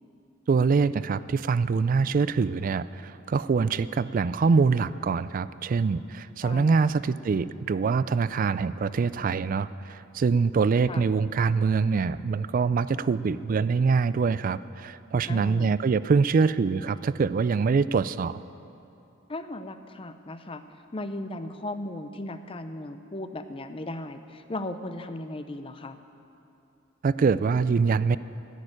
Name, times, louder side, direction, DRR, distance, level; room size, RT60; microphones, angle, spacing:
voice 1, 0.5-18.4 27.0-28.2, right 5 dB, 40° right, 16 dB, 0.3 m, -24 dB
voice 2, 6.4-6.9 10.9-11.1 15.3-15.7 19.3-20.6 20.9-26.0, left 1 dB, 25° left, 9 dB, 0.6 m, -36 dB
14.5 x 6.7 x 9.9 m, 2.7 s
head